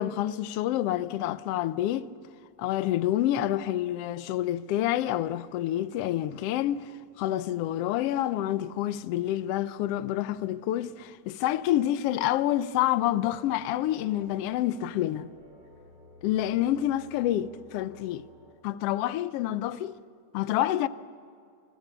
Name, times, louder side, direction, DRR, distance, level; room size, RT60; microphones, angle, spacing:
voice 1, 0.0-2.1 2.6-6.9 7.2-15.3 16.2-18.2 18.6-20.0 20.3-20.9, left 13 dB, 70° left, 1.5 m, -28 dB
sound 1, 13.3-18.6, left 1 dB, 35° right, 4.4 m, -54 dB
28.5 x 21.0 x 7.2 m
omnidirectional pair, 3.4 m